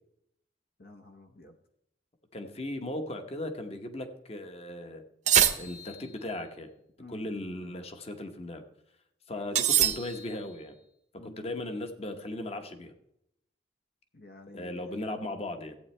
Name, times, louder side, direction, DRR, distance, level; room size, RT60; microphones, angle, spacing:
voice 1, 0.8-1.5 7.0-7.4 11.2-11.5 14.1-14.9, left 2 dB, 60° left, 5 dB, 0.9 m, -50 dB
voice 2, 2.3-5.0 5.5-6.7 7.1-8.6 9.3-10.7 11.2-12.9 14.5-15.8, left 1 dB, 35° left, 7 dB, 1.1 m, -37 dB
sound 1, 5.3-6.2 9.5-10.5, right 10 dB, 45° right, 0.8 m, -25 dB
14.5 x 8.6 x 3.3 m, 0.75 s
head